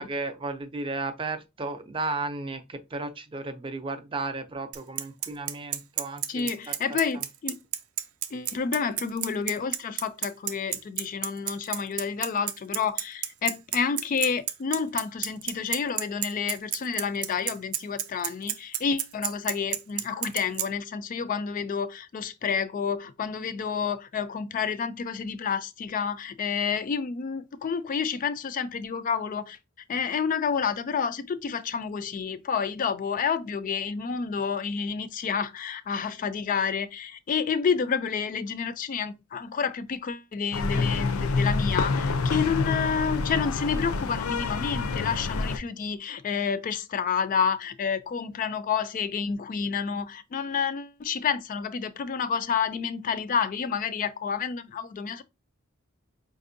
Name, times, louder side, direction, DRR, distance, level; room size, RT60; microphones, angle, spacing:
voice 1, 0.0-7.0, right 3 dB, 25° right, 0.4 m, -34 dB
Bicycle, 4.7-20.7, right 12 dB, 85° right, 0.5 m, -30 dB
voice 2, 6.3-7.6 8.3-29.6 29.9-55.2, left 6 dB, 40° left, 0.3 m, -29 dB
sound 1, 40.5-45.6, left 3 dB, 90° left, 0.5 m, -27 dB
4.9 x 2.6 x 2.6 m
head